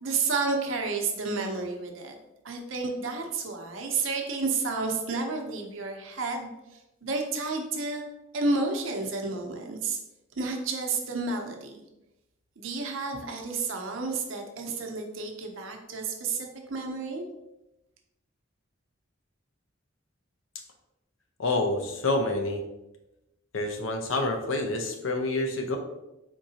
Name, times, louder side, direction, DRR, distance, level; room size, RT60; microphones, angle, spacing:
voice 1, 0.0-2.1 2.4-6.5 7.0-8.0 8.3-10.0 10.4-11.8 12.6-17.2, right 3 dB, 75° right, 2 dB, 0.7 m, -31 dB
voice 2, 21.4-22.6 23.5-25.8, left 2 dB, 80° left, 4 dB, 0.7 m, -28 dB
4.5 x 3.7 x 2.8 m, 0.95 s
head